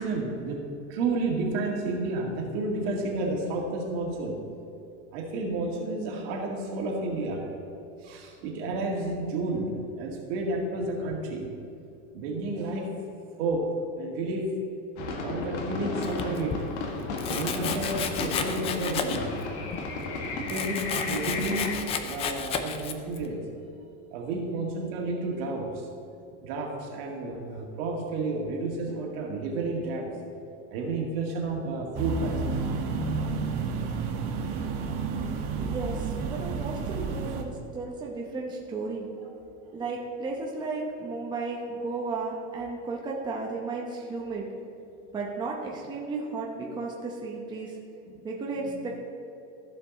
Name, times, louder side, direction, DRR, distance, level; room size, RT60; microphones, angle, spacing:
voice 1, 0.0-4.5 5.1-7.7 8.0-11.5 12.1-12.9 13.4-14.5 15.2-16.7 17.3-19.3 20.3-23.4 24.1-25.9 26.4-30.2 30.7-32.6 34.4-34.6 48.1-48.2 48.6-48.8, right 2 dB, 60° right, 0 dB, 2.1 m, -31 dB
sound 1, 15.0-21.8, left 3 dB, 85° left, 1.6 m, -33 dB
Domestic sounds home sounds, 16.0-16.6 17.2-19.4 19.7-23.3, left 7 dB, 20° left, 0.3 m, -33 dB
sound 2, 31.9-37.4, right 4 dB, 45° right, 1.1 m, -31 dB
voice 2, 35.6-39.1 39.7-44.5 45.1-47.8 48.2-48.9, right 3 dB, 15° right, -2 dB, 0.8 m, -34 dB
14.5 x 5.2 x 4.1 m, 2.7 s
supercardioid pair, 160°, 33 cm